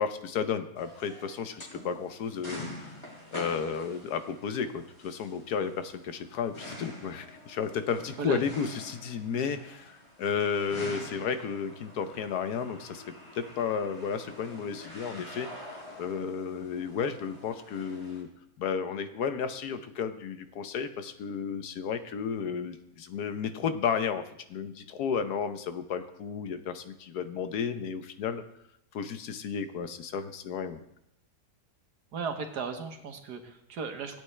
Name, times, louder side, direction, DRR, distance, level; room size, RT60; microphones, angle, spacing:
voice 1, 0.0-2.7 3.3-9.8 10.2-13.0 13.3-18.3 18.6-24.2 24.5-28.4 28.9-30.8, left 6 dB, 75° left, 10 dB, 1.3 m, -33 dB
sound 1, 0.8-18.2, left 1 dB, 20° left, 2.6 m, -46 dB
voice 2, 32.1-34.2, right 5 dB, 90° right, 6 dB, 1.8 m, -36 dB
16.0 x 8.8 x 3.3 m, 0.77 s
omnidirectional pair, 1.7 m